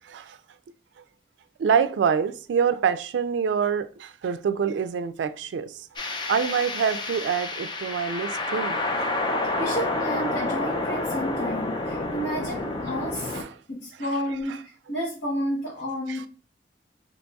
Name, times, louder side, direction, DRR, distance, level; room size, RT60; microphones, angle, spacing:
voice 1, 1.6-5.9 6.3-9.1 13.3-13.5 14.5-14.6 16.1-16.3, right 6 dB, 85° right, 0.3 m, -26 dB
sound 1, 6.0-13.4, left 2 dB, 25° left, 0.4 m, -29 dB
voice 2, 9.6-13.4 13.7-16.2, equal, 75° left, 1.1 m, -31 dB
2.9 x 2.3 x 4.0 m
head